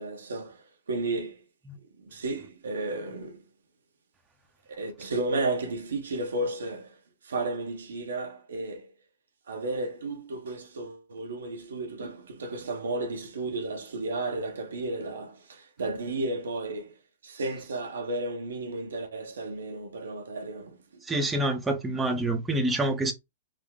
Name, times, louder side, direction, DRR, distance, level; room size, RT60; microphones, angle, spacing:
voice 1, 0.0-1.4 2.0-3.4 4.7-7.0 7.2-8.9 9.5-17.0 17.2-21.0, right 2 dB, 85° right, 0.9 m, -33 dB
voice 2, 21.1-23.1, right 2 dB, 10° right, 0.7 m, -26 dB
3.5 x 2.1 x 3.6 m
hypercardioid pair, 120°, 0 cm